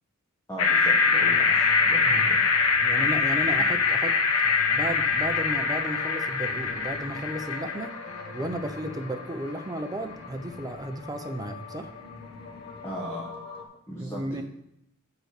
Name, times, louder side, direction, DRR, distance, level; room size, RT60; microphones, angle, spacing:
voice 1, 0.5-2.4 12.8-13.3 13.9-14.4, equal, 15° left, -5 dB, 1.2 m, -38 dB
sound 1, 0.6-8.8, left 5 dB, 80° left, 0.9 m, -24 dB
sound 2, 1.1-13.7, left 4 dB, 50° left, 1.3 m, -43 dB
voice 2, 2.8-4.2 4.7-7.9 8.3-11.9 14.0-14.4, right 1 dB, 20° right, 6 dB, 0.6 m, -34 dB
6.8 x 4.6 x 6.6 m, 0.79 s
head